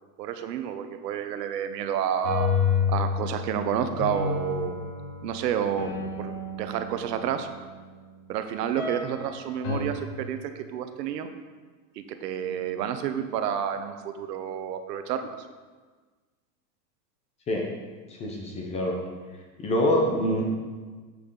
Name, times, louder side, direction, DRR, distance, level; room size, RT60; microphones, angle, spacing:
voice 1, 0.2-2.5 2.9-4.8 5.2-7.5 8.3-11.3 12.0-15.4, right 9 dB, 80° right, 8 dB, 0.9 m, -30 dB
sound 1, 2.1-7.7 8.8-9.3 9.6-9.8, left 6 dB, 50° left, 1.6 m, -30 dB
voice 2, 18.1-19.0 19.6-20.4, left 1 dB, 15° left, 0 dB, 0.5 m, -25 dB
7.7 x 6.9 x 3.8 m, 1.4 s
supercardioid pair, 155°, 48 cm